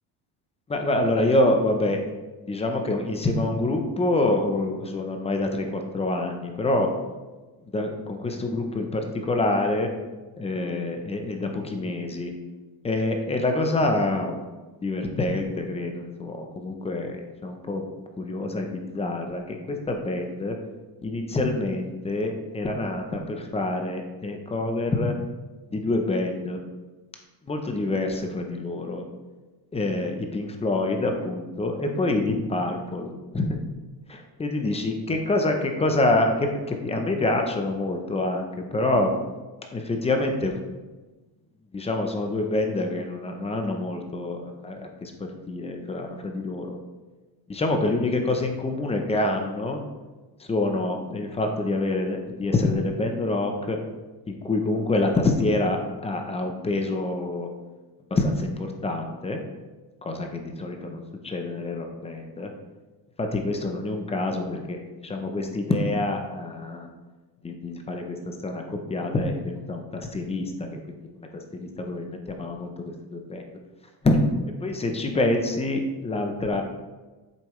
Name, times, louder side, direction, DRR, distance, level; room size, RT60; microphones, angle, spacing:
voice 1, 0.7-2.0 2.5-6.9 7.6-9.9 10.4-12.3 12.8-14.4 14.8-17.8 18.2-20.6 21.0-25.1 25.7-26.6 27.5-29.0 29.7-33.6 34.1-38.5 38.7-39.1 39.7-40.6 41.7-45.1 45.5-46.8 47.5-49.8 50.4-53.8 54.3-57.5 58.1-59.4 60.0-61.0 61.2-62.5 63.2-66.9 67.4-70.8 71.3-72.7 73.1-73.4 74.0-74.2 74.6-76.6, left 2 dB, 15° left, 4 dB, 0.7 m, -26 dB
8.3 x 6.8 x 3.2 m, 1.2 s
cardioid pair, 160°, 43 cm